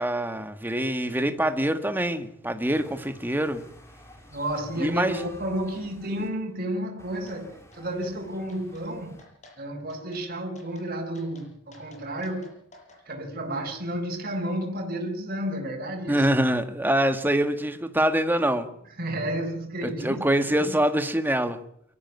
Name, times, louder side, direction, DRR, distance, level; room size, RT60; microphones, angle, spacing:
voice 1, 0.0-3.6 4.8-5.2 16.1-18.7 19.8-21.6, right 1 dB, 10° right, 1.7 m, -25 dB
sound 1, 2.6-6.3 7.0-9.2, left 1 dB, 15° left, 3.8 m, -51 dB
voice 2, 4.3-9.2 9.6-12.5 13.1-16.3 19.0-20.8, right 1 dB, 45° right, 4.7 m, -32 dB
sound 2, 7.3-7.4 7.7-8.1 8.5-8.9 9.2-9.6 9.9-10.2 10.6-10.9 11.1-13.0, left 2 dB, 35° left, 7.6 m, -53 dB
23.0 x 14.0 x 9.4 m
head